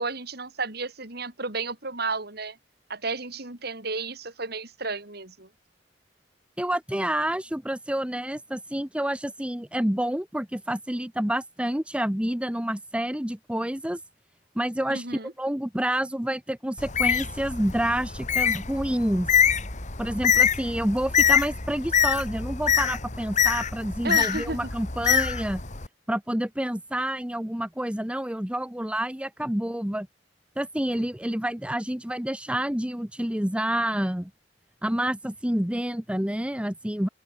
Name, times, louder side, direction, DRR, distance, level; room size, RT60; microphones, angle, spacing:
voice 1, 0.0-2.6 2.9-5.5 14.9-15.3 24.0-24.6, right 3 dB, 60° right, 5.2 m, -32 dB
voice 2, 6.6-14.0 14.5-19.3 20.0-25.6 26.1-30.1 30.6-34.3 34.8-37.1, right 1 dB, 5° right, 1.2 m, -28 dB
Bird, 16.8-25.9, left 7 dB, 45° left, 2.6 m, -25 dB
open air
head